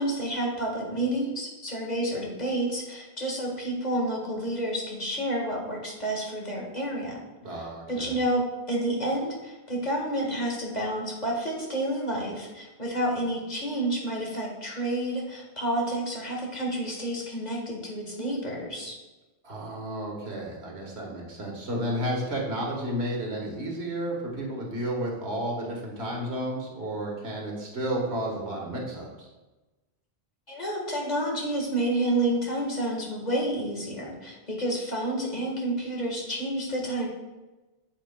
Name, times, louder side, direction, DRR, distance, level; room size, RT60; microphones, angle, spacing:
voice 1, 0.0-7.2 7.9-19.0 30.5-37.1, right 1 dB, 45° left, -2 dB, 1.7 m, -29 dB
voice 2, 7.4-8.2 19.4-29.3, right 1 dB, 90° right, -1 dB, 1.8 m, -32 dB
9.0 x 7.1 x 2.3 m, 1.1 s
omnidirectional pair, 1.1 m